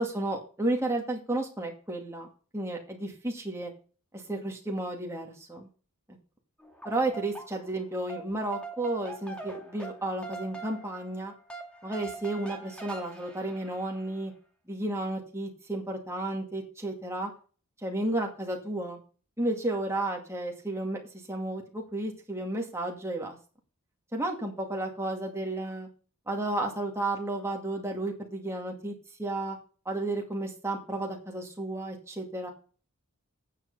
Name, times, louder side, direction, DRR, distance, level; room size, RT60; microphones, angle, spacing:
voice 1, 0.0-2.3 2.5-3.7 4.1-5.7 6.8-11.3 11.8-14.3 14.7-17.3 17.8-19.0 19.4-21.0 21.3-23.4 24.1-25.9 26.3-29.6 29.9-32.5, right 2 dB, 10° right, 1 dB, 2.2 m, -32 dB
sound 1, 6.6-7.8 8.1-14.2, right 3 dB, 5° left, 2.2 m, -43 dB
9.3 x 7.6 x 5.5 m, 0.38 s
head